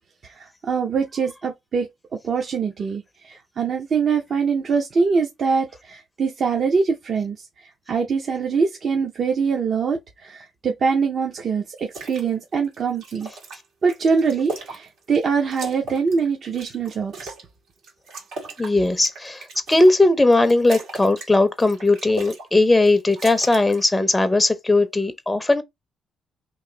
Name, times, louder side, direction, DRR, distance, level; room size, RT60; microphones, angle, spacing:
voice 1, 0.2-1.9 2.2-13.3 13.8-17.3, right 5 dB, 50° right, 0.6 m, -23 dB
sound 1, 11.8-12.2 12.6-15.2 15.5-17.5 17.8-20.0 20.3-21.3 21.6-22.5 22.7-23.9, right 2 dB, 80° right, 1.6 m, -37 dB
voice 2, 18.6-25.6, left 2 dB, 15° left, 0.5 m, -18 dB
3.0 x 2.6 x 3.7 m
cardioid pair, 90°, 0 cm